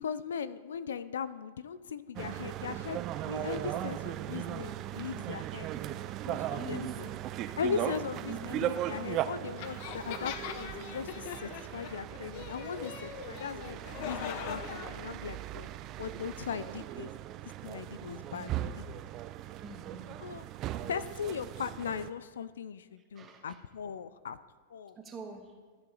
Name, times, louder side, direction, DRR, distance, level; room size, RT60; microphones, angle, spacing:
voice 1, 0.0-5.7 6.3-7.1 7.6-15.7 16.0-17.1 17.6-18.8 20.2-20.4 20.9-24.4 24.7-25.0, left 7 dB, 85° left, 16 dB, 0.4 m, -39 dB
sound 1, 2.2-22.1, right 13 dB, 35° right, 0.4 m, -38 dB
voice 2, 6.2-7.0 8.3-8.6 18.3-18.7 19.5-20.1 23.1-23.6 25.0-25.5, right 2 dB, 20° right, 3 dB, 1.4 m, -44 dB
sound 2, 9.6-14.9, left 8 dB, 55° left, 0.7 m, -42 dB
13.5 x 6.1 x 3.9 m, 1.5 s
hypercardioid pair, 130°, 0 cm